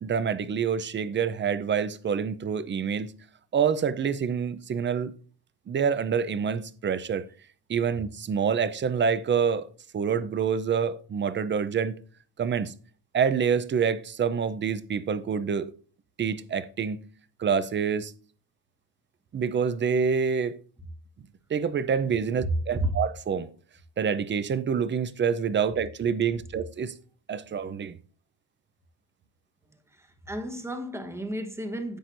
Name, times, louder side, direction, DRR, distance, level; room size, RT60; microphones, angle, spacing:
voice 1, 0.0-3.1 3.5-5.1 5.7-7.3 7.7-9.7 9.9-11.9 12.4-12.7 13.1-15.7 16.2-17.0 17.4-18.1 19.3-20.6 21.5-23.5 24.0-26.9 27.3-28.0, right 6 dB, 30° right, 0.6 m, -27 dB
voice 2, 22.4-23.0 29.9-32.0, right 1 dB, 5° right, 1.1 m, -31 dB
10.0 x 7.7 x 2.6 m
cardioid pair, 150°, 39 cm